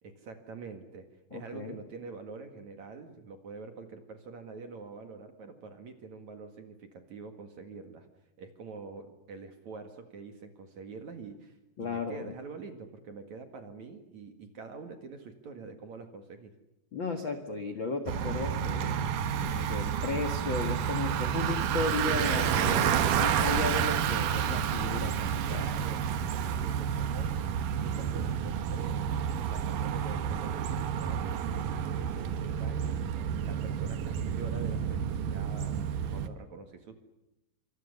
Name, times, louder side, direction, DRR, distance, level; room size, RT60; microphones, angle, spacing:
voice 1, 0.0-8.1 8.4-16.5 25.4-27.5 27.8-29.0 29.4-37.0, right 4 dB, 50° right, 6 dB, 2.5 m, -45 dB
voice 2, 1.3-1.8 11.8-12.3 16.9-19.1 19.4-25.7, left 4 dB, 80° left, 6 dB, 1.1 m, -35 dB
Bicycle, 18.1-36.3, right 8 dB, 65° right, 2.1 m, -30 dB
27.5 x 26.0 x 6.8 m, 0.94 s
omnidirectional pair, 5.5 m